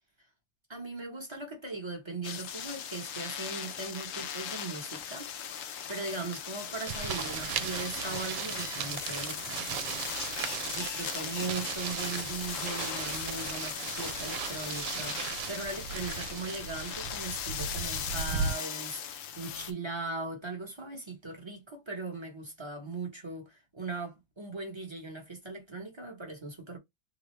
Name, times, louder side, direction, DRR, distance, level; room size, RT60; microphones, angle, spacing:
voice 1, 0.7-5.3 5.9-9.9 10.4-26.8, right 3 dB, 30° right, 0.4 m, -39 dB
sound 1, 2.2-19.7, left 8 dB, 85° left, 0.7 m, -38 dB
sound 2, 6.9-18.5, right 8 dB, 75° right, 1.1 m, -37 dB
3.6 x 2.0 x 3.1 m
omnidirectional pair, 2.0 m